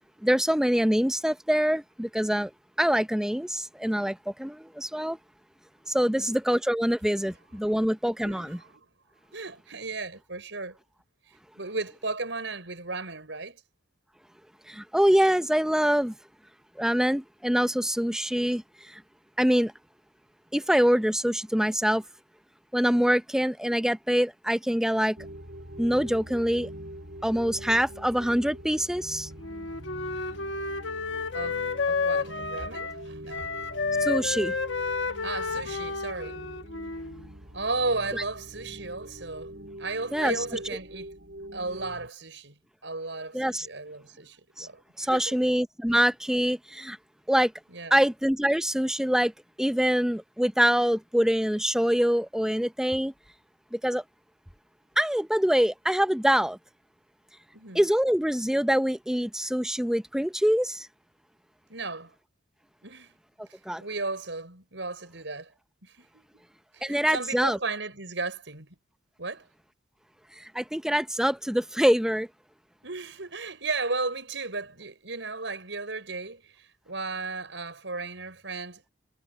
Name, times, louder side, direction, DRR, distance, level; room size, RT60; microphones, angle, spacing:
voice 1, 0.2-2.5 2.8-5.2 5.9-8.5 14.7-16.1 16.8-18.6 19.4-19.7 20.5-22.0 22.7-25.2 25.8-26.7 27.2-29.3 34.0-34.5 40.1-40.3 43.3-43.7 44.6-44.7 45.0-47.0 47.3-47.5 47.9-49.3 49.6-53.1 53.7-54.0 55.0-56.6 57.7-60.9 63.7-63.8 66.8-67.6 70.5-72.3, equal, 5° right, 0.6 m, -24 dB
voice 2, 6.0-6.3 7.6-7.8 8.2-8.9 9.3-10.8 11.6-13.6 30.1-30.4 31.3-33.5 35.2-36.4 37.5-39.5 39.8-41.1 41.5-45.4 45.8-45.9 47.7-48.0 57.5-57.9 61.7-62.1 62.8-63.1 63.8-65.5 65.8-66.4 66.7-68.8 69.2-69.5 72.8-78.9, right 3 dB, 90° right, 5.9 m, -35 dB
sound 1, 25.2-42.1, right 1 dB, 60° right, 7.9 m, -43 dB
Wind instrument woodwind instrument, 29.4-33.0 33.3-37.2, left 4 dB, 85° left, 1.3 m, -31 dB
head